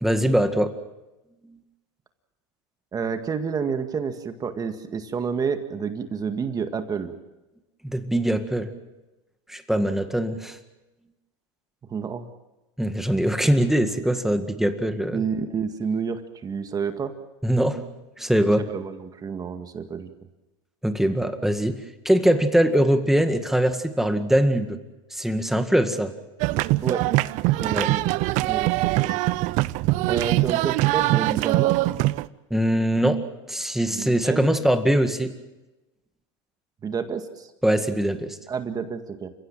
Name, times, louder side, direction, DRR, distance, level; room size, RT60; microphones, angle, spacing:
voice 1, 0.0-0.7 7.8-8.7 9.5-10.6 12.8-15.2 17.4-17.9 18.2-18.6 20.8-24.8 25.1-26.1 27.7-27.9 32.5-35.3 37.6-38.4, right 1 dB, ahead, 7 dB, 1.9 m, -22 dB
voice 2, 2.9-7.1 11.9-12.3 15.1-17.1 18.6-20.1 26.8-27.0 27.5-29.2 30.0-31.8 33.9-34.6 36.8-37.5 38.5-39.3, right 6 dB, 25° right, 7 dB, 1.9 m, -29 dB
sound 1, 26.4-32.3, right 19 dB, 50° right, 0.7 m, -22 dB
29.5 x 16.5 x 7.5 m, 1.0 s
supercardioid pair, 120°, 15 cm